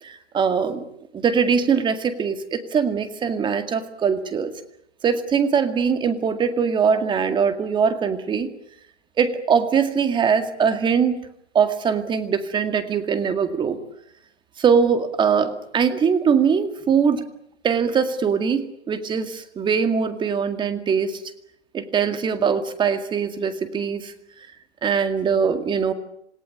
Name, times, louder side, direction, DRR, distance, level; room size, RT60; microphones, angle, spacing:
voice 1, 0.0-0.8 1.1-4.5 5.0-8.5 9.2-11.2 11.5-13.8 14.6-17.2 17.6-21.2 21.7-24.1 24.8-25.9, right 6 dB, 15° right, 9 dB, 2.1 m, -22 dB
27.5 x 18.5 x 9.8 m, 0.76 s
hypercardioid pair, 135°, 34 cm